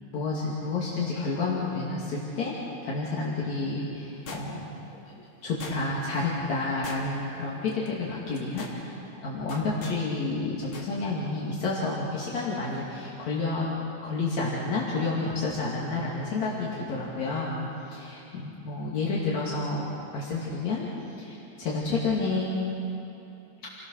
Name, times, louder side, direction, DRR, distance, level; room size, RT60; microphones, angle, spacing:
voice 1, 0.1-2.5 2.8-4.6 5.4-9.0 9.2-13.7 14.0-17.6 17.9-19.9 20.1-20.9 21.1-22.7, left 3 dB, 65° left, -6 dB, 3.8 m, -30 dB
sound 1, 4.3-4.8 5.6-6.1 6.8-7.4 7.7-7.9 8.3-8.8 9.5-10.0 10.7-10.9 11.2-11.3, left 3 dB, 45° left, 2.9 m, -41 dB
29.5 x 19.5 x 6.4 m, 2.9 s
omnidirectional pair, 3.5 m